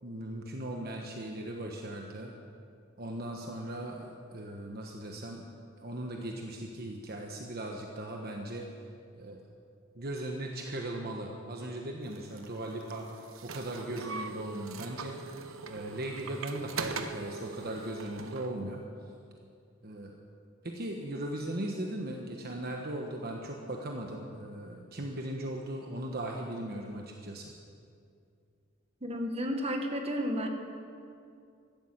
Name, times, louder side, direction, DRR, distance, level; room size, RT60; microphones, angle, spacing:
voice 1, 0.0-2.3 3.0-5.4 5.8-8.7 9.1-9.4 9.9-15.2 15.7-18.8 19.8-20.2 20.6-27.5, right 1 dB, 50° right, 1 dB, 1.2 m, -38 dB
sound 1, 12.1-18.5, right 4 dB, 75° right, 1.0 m, -41 dB
voice 2, 29.0-30.5, equal, 30° right, 3 dB, 1.6 m, -32 dB
14.5 x 12.0 x 7.9 m, 2.4 s
head